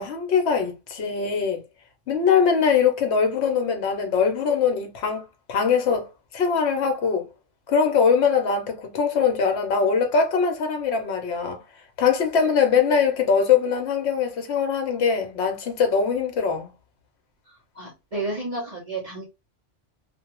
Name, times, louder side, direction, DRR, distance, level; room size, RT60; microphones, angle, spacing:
voice 1, 0.0-1.6 2.1-5.2 5.5-6.1 6.3-7.3 7.7-11.6 12.0-16.7, left 6 dB, 65° left, 1.0 m, -22 dB
voice 2, 17.5-19.3, right 2 dB, 35° right, 0.8 m, -32 dB
2.6 x 2.3 x 2.9 m
omnidirectional pair, 1.3 m